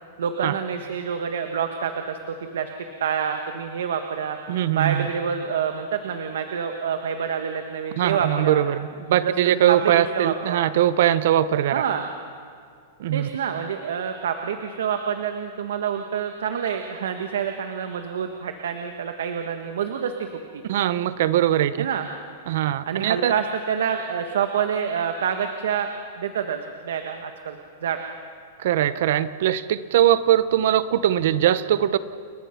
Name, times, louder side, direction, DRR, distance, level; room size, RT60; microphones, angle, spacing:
voice 1, 0.2-2.7 3.0-4.4 4.7-8.6 9.2-10.7 11.7-12.1 13.1-20.6 21.8-22.1 22.9-28.0, right 7 dB, 90° right, 6 dB, 1.6 m, -27 dB
voice 2, 4.5-5.1 8.0-11.7 13.0-13.3 20.7-21.9 22.5-23.3 28.6-32.0, right 11 dB, 50° right, 14 dB, 0.9 m, -21 dB
30.0 x 22.0 x 5.9 m, 2.2 s
supercardioid pair, 180°, 0 cm